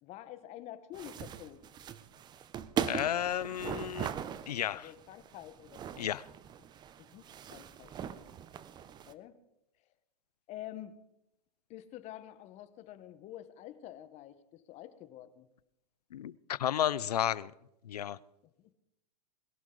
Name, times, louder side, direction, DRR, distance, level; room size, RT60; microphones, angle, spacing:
voice 1, 0.0-1.6 4.7-6.1 7.0-7.9 9.1-9.4 10.5-10.9 11.7-15.5 18.6-18.7, left 12 dB, 35° left, 1.2 m, -48 dB
sound 1, 0.9-9.1, right 9 dB, 20° right, 0.7 m, -40 dB
voice 2, 2.8-4.1 4.5-4.9 6.0-6.3 16.1-17.5 17.8-18.2, left 11 dB, 85° left, 0.6 m, -32 dB
21.0 x 12.0 x 3.9 m
hypercardioid pair, 125°, 20 cm